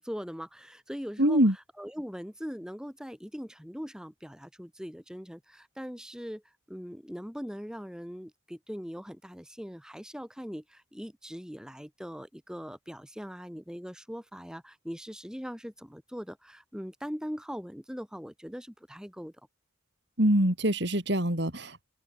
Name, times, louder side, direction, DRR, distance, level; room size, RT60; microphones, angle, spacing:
voice 1, 0.0-6.4 6.7-19.3, equal, 5° right, 6.7 m, -41 dB
voice 2, 1.2-1.5 20.2-21.8, right 1 dB, 55° right, 4.4 m, -24 dB
open air
head